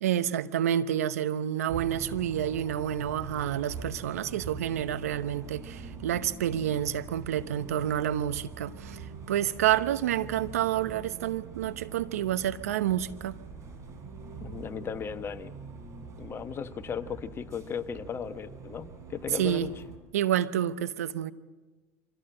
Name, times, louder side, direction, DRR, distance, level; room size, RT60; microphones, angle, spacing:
voice 1, 0.0-13.4 19.3-19.7 20.1-21.3, right 11 dB, 80° right, 0.9 m, -29 dB
Bus, 1.7-20.0, right 4 dB, 40° right, 3.7 m, -44 dB
voice 2, 14.4-15.5 16.2-19.7, left 7 dB, 30° left, 1.1 m, -36 dB
25.0 x 16.5 x 7.7 m
hypercardioid pair, 90°, 8 cm